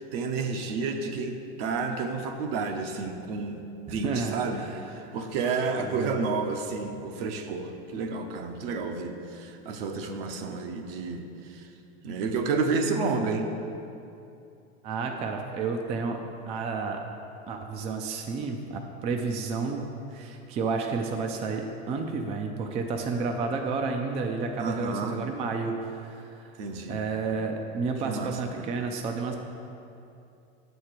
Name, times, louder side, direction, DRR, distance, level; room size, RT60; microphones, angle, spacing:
voice 1, 0.0-4.6 4.9-11.2 11.5-11.6 12.0-13.5 24.6-25.2 26.6-27.0 28.0-28.7, right 4 dB, 60° right, 5 dB, 0.9 m, -30 dB
voice 2, 3.9-5.2 5.8-6.2 14.8-16.2 16.5-17.0 17.5-26.5 26.9-29.3, right 4 dB, 20° right, 3 dB, 0.3 m, -31 dB
6.5 x 4.5 x 6.6 m, 2.7 s
supercardioid pair, 130°, 33 cm